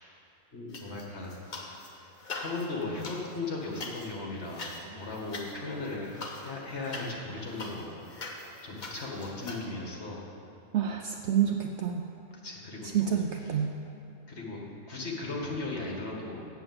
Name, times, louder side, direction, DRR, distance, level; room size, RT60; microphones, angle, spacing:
voice 1, 0.5-1.3 1.8-2.1 2.4-8.0 8.6-10.3 12.4-13.7 14.3-14.6 14.9-16.5, left 3 dB, 55° left, -2 dB, 1.9 m, -37 dB
sound 1, 0.7-1.9 2.2-9.6, left 3 dB, 40° left, 1.0 m, -42 dB
voice 2, 10.7-12.0 12.9-13.7, right 9 dB, 65° right, 3 dB, 0.8 m, -28 dB
8.1 x 7.1 x 7.8 m, 2.7 s
omnidirectional pair, 1.4 m